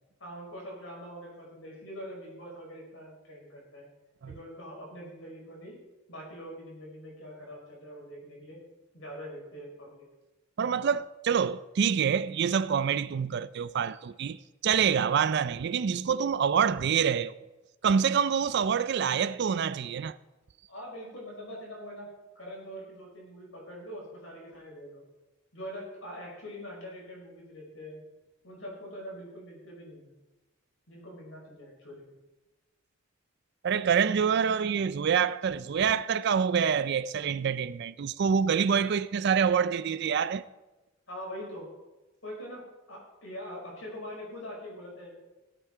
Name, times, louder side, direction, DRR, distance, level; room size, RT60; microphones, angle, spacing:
voice 1, 0.2-3.9 4.2-5.8 6.1-8.6 8.9-10.1 20.7-22.1 22.4-25.0 25.5-28.0 28.4-30.2 30.9-32.1 41.1-41.7 42.2-45.2, equal, 65° left, 5.3 m, -43 dB
voice 2, 10.6-17.4 17.8-20.2 33.6-40.4, right 7 dB, 50° right, 0.3 m, -26 dB
17.0 x 8.3 x 4.5 m
head